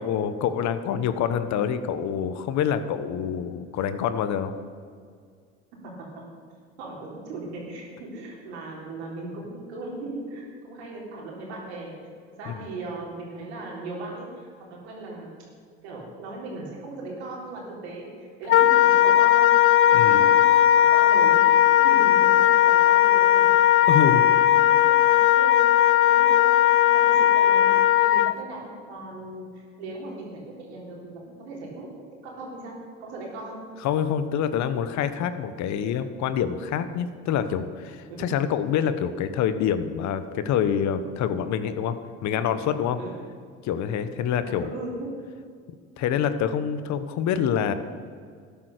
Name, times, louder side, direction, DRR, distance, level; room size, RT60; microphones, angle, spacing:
voice 1, 0.0-4.5 12.5-12.6 19.9-20.2 23.9-24.2 33.8-42.0 42.2-43.0 43.6-44.7 46.0-47.7, left 8 dB, 60° left, 11 dB, 1.1 m, -26 dB
voice 2, 5.8-6.3 6.8-12.1 12.4-15.3 15.8-19.5 19.9-23.5 23.9-31.9 32.2-32.8 33.0-33.6 38.1-38.3 43.0-43.2 44.4-45.1, right 2 dB, 85° right, -2 dB, 3.7 m, -38 dB
Wind instrument woodwind instrument, 18.5-28.4, left 12 dB, 40° left, 0.5 m, -17 dB
13.0 x 10.5 x 6.6 m, 2.1 s
hypercardioid pair, 70°, 32 cm